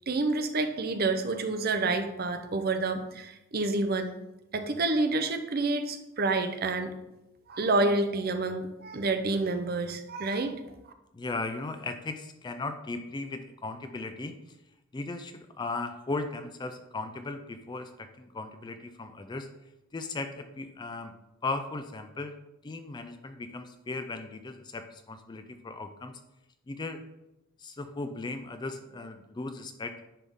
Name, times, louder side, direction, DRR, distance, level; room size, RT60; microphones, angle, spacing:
voice 1, 0.1-4.1 4.5-6.9 7.5-10.6, right 3 dB, 50° right, 8 dB, 0.6 m, -28 dB
voice 2, 11.1-14.4 14.9-19.5 19.9-21.1 21.4-22.3 22.6-26.2 26.7-27.0 27.6-29.9, left 3 dB, 20° left, 8 dB, 0.4 m, -37 dB
9.9 x 3.6 x 3.6 m, 0.92 s
head